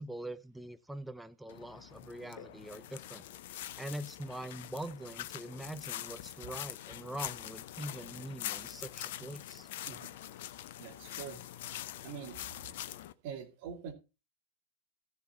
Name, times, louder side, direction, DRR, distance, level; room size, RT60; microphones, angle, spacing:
voice 1, 0.0-3.3 3.8-9.7, right 1 dB, 5° right, 12 dB, 0.7 m, -43 dB
sound 1, 1.5-13.1, left 12 dB, 55° left, 0.6 m, -44 dB
voice 2, 9.9-10.2 10.8-11.4 12.0-12.4 13.2-13.9, right 7 dB, 50° right, 4 dB, 2.5 m, -44 dB
14.0 x 6.9 x 4.3 m, 0.29 s
figure-of-eight pair, 90°, 0 cm